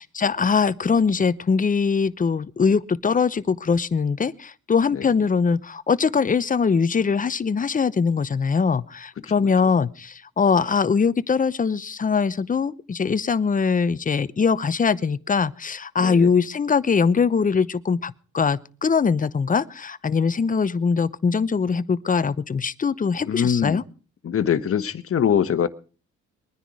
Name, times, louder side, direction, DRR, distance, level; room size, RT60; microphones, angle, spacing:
voice 1, 0.0-23.8, left 5 dB, 25° left, 0.8 m, -22 dB
voice 2, 16.0-16.3 23.3-23.8 24.2-25.7, left 8 dB, 45° left, 1.3 m, -22 dB
22.0 x 10.0 x 4.9 m
cardioid pair, 90°, 30 cm